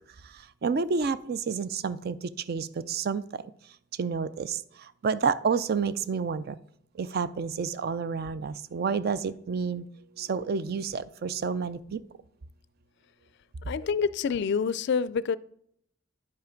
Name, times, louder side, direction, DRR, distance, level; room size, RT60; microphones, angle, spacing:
voice 1, 0.2-3.4 4.0-6.6 6.9-9.9 10.2-12.0, right 5 dB, 50° right, 0.4 m, -30 dB
voice 2, 13.7-15.4, left 6 dB, 60° left, 0.3 m, -27 dB
10.5 x 5.6 x 5.1 m
head